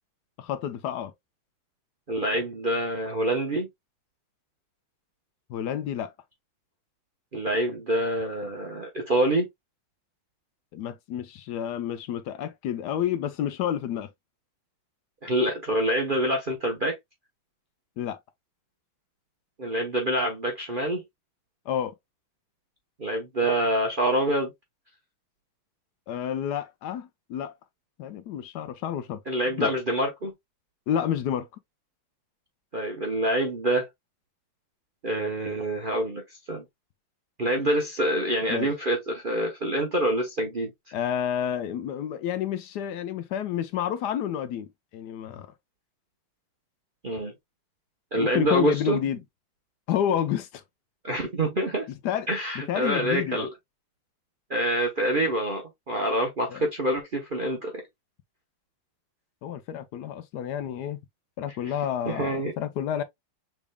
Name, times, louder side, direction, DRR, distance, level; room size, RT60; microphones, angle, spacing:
voice 1, 0.4-1.1 5.5-6.1 10.7-14.1 18.0-18.2 21.7-21.9 26.1-27.6 28.0-29.2 29.6-29.7 30.9-31.5 38.5-38.7 40.9-45.5 48.1-49.2 49.9-50.6 52.0-52.3 52.5-53.5 56.5-56.6 59.4-61.0 61.4-63.0, left 10 dB, 80° left, 0.9 m, -29 dB
voice 2, 2.1-3.7 7.3-9.5 15.2-17.0 19.6-21.0 23.0-24.5 29.3-30.3 32.7-33.9 35.0-36.2 36.5-36.6 37.4-40.7 47.0-47.3 48.1-49.0 51.0-51.9 52.3-53.5 54.5-57.8 62.0-62.5, right 1 dB, 55° right, 0.5 m, -26 dB
6.0 x 3.5 x 2.2 m
omnidirectional pair, 2.3 m